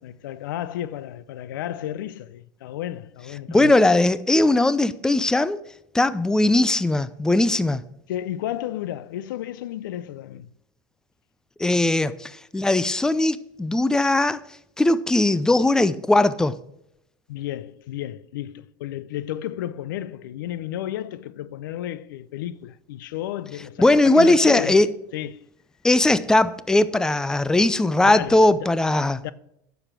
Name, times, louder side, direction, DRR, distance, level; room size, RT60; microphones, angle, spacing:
voice 1, 0.0-3.8 8.1-10.5 17.3-24.9 25.1-25.5 28.0-28.8 29.2-29.3, left 12 dB, 90° left, 0.6 m, -32 dB
voice 2, 3.5-5.6 5.9-7.8 11.6-14.4 14.8-16.6 23.8-24.9 25.8-29.2, left 2 dB, 5° left, 0.5 m, -19 dB
10.0 x 7.0 x 6.0 m
supercardioid pair, 115°, 11 cm